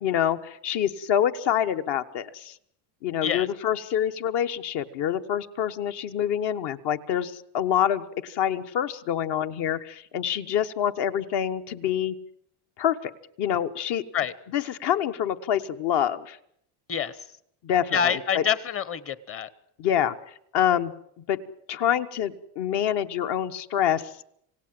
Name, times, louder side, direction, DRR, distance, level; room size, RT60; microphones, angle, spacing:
voice 1, 0.0-2.5 3.0-12.1 12.8-13.1 13.4-14.0 14.5-16.4 17.6-18.4 19.8-20.2 20.5-20.9 21.3-21.4 21.7-24.0, left 10 dB, 55° left, 9 dB, 1.4 m, -26 dB
voice 2, 17.9-19.5, left 8 dB, 30° left, 17 dB, 1.0 m, -26 dB
27.5 x 17.5 x 7.7 m, 0.72 s
cardioid pair, 140°, 48 cm